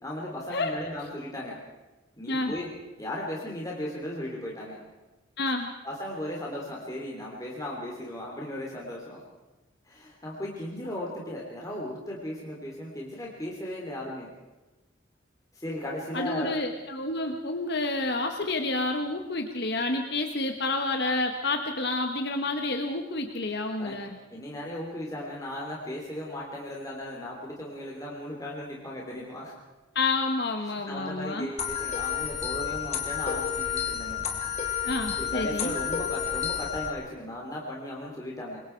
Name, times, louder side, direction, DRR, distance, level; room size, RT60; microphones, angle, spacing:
voice 1, 0.0-1.6 2.2-2.7 3.0-4.8 5.8-9.2 9.8-14.3 15.5-16.6 23.8-23.9 24.3-29.5 30.6-34.2 35.2-38.6, left 1 dB, 15° left, -3 dB, 3.3 m, -36 dB
voice 2, 5.4-5.7 16.1-24.1 29.9-31.5 34.8-35.7, left 2 dB, 55° left, 4 dB, 1.5 m, -29 dB
sound 1, 31.6-36.9, left 8 dB, 35° left, 3.0 m, -31 dB
27.5 x 22.5 x 4.7 m, 1.1 s
head